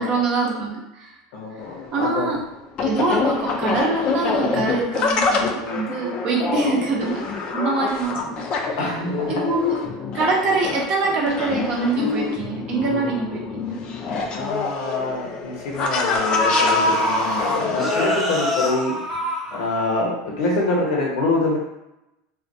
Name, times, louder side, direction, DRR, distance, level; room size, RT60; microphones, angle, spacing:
voice 1, 0.0-1.1 1.9-2.4 2.8-7.3 7.5-8.4 9.3-9.8 10.1-13.8, right 3 dB, 45° right, -1 dB, 0.6 m, -24 dB
voice 2, 1.3-2.3 6.6-6.8 8.8-9.2 10.4-10.5 14.3-19.0 19.5-21.6, left 2 dB, 70° left, -3 dB, 0.7 m, -25 dB
sound 1, 1.6-18.2, left 4 dB, 40° left, 0.3 m, -26 dB
sound 2, 13.9-14.0 14.4-14.6 15.6-15.7 16.1-20.0 20.4-20.5, left 1 dB, ahead, 0.7 m, -23 dB
2.2 x 2.1 x 2.6 m, 0.89 s
supercardioid pair, 130°, 2 cm